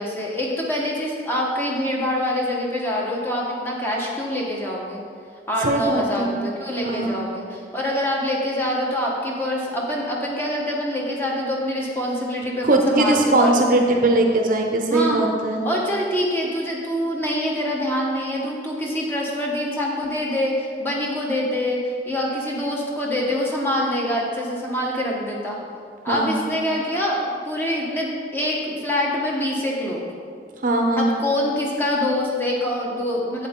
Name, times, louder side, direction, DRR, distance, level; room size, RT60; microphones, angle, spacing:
voice 1, 0.0-5.0 5.5-13.6 13.9-14.0 14.9-15.3 15.6-25.6 26.0-30.0 31.0-33.5, left 1 dB, 10° left, -3 dB, 1.2 m, -25 dB
voice 2, 5.6-6.3 6.8-7.3 12.6-15.6 26.1-26.4 30.6-31.1, right 2 dB, 50° right, 2 dB, 0.7 m, -20 dB
8.1 x 8.0 x 3.7 m, 2.1 s
head